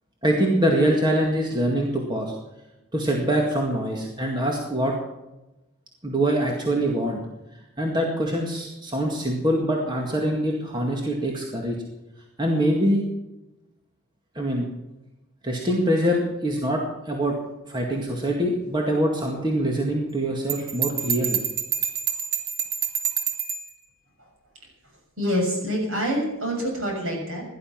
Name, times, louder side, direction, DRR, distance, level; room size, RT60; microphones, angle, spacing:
voice 1, 0.2-2.4 2.9-4.9 6.0-7.2 7.8-11.8 12.4-13.0 14.4-14.7 15.4-17.3 17.7-21.4, right 1 dB, 20° right, 0 dB, 2.0 m, -24 dB
Bell, 20.5-23.7, right 7 dB, 45° right, 2.0 m, -27 dB
voice 2, 25.2-27.5, equal, 65° right, 0 dB, 6.8 m, -26 dB
17.0 x 11.5 x 5.9 m, 0.98 s
head